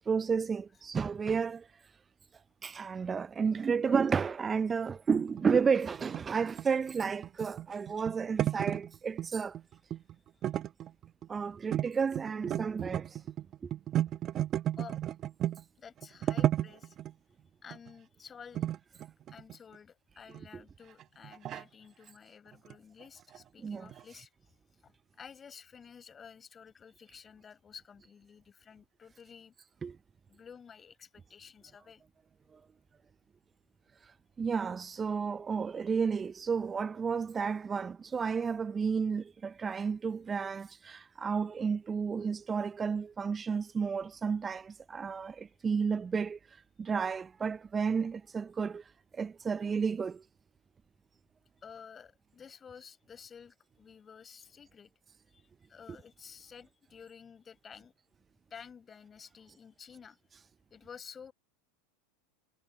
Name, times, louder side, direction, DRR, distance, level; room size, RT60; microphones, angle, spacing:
voice 1, 0.1-1.7 2.6-9.6 11.3-13.2 13.6-13.7 23.6-23.9 29.8-30.0 34.0-50.2, right 6 dB, 20° right, 0.5 m, -32 dB
sound 1, 5.2-9.3 9.5-10.1 10.4-11.4 11.7-11.9 12.2-15.6 16.0-17.1 17.7-17.9 18.5-19.8 20.3-20.4 21.0-21.6 22.5-22.7 23.0-23.1 23.3-23.4 23.9-24.0, right 12 dB, 40° right, 1.1 m, -33 dB
voice 2, 15.8-17.0 17.6-18.7 19.3-24.3 24.8-29.5 30.3-32.0 51.6-54.9 55.3-57.9 58.5-60.2 60.7-61.3, left 6 dB, 25° left, 6.1 m, -52 dB
hypercardioid pair, 90°, 0 cm